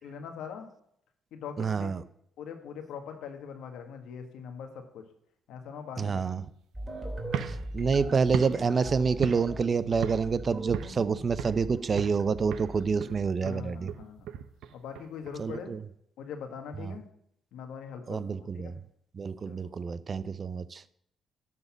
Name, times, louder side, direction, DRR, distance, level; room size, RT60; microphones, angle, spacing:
voice 1, 0.0-0.7 1.3-1.9 2.4-5.0 5.5-6.2 13.4-14.3 14.7-15.8 16.2-17.1 17.5-18.8 19.5-19.6, left 6 dB, 85° left, 6 dB, 1.5 m, -42 dB
voice 2, 1.6-2.0 6.0-6.4 7.4-13.9 15.4-15.8 16.8-17.0 18.1-18.8 19.1-20.8, right 5 dB, 40° right, 16 dB, 0.5 m, -28 dB
sound 1, 6.7-13.4, right 1 dB, 20° right, 2.8 m, -40 dB
sound 2, 7.2-9.7 10.0-10.4 10.7-11.7 12.0-12.3 12.5-15.6, right 9 dB, 85° right, 0.6 m, -38 dB
12.0 x 4.2 x 7.2 m, 0.72 s
cardioid pair, 90°, 0 cm